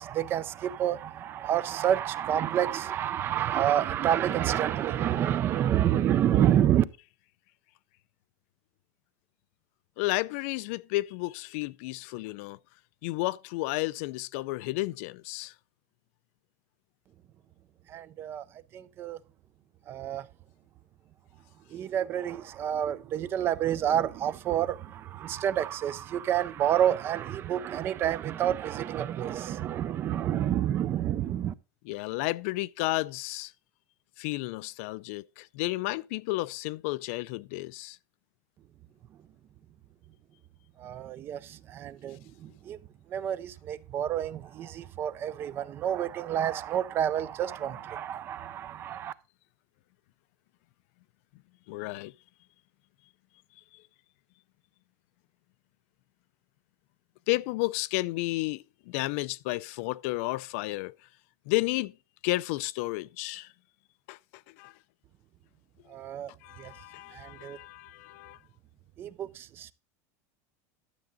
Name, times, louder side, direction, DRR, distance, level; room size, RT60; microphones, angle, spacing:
voice 1, 0.0-6.8 17.9-18.4 18.7-19.2 19.9-20.3 21.7-31.5 40.8-42.8 43.1-49.1 65.9-66.3 66.6-66.7 67.1-67.6 69.0-69.7, right 10 dB, 25° right, 0.5 m, -29 dB
voice 2, 10.0-12.6 13.0-15.5 31.9-33.5 34.2-38.0 51.7-52.1 57.3-60.9 61.5-61.9 62.2-63.5 64.1-64.2 64.6-64.7 66.4-68.4, left 20 dB, 60° left, 0.4 m, -32 dB
12.0 x 7.1 x 3.8 m
supercardioid pair, 170°, 8 cm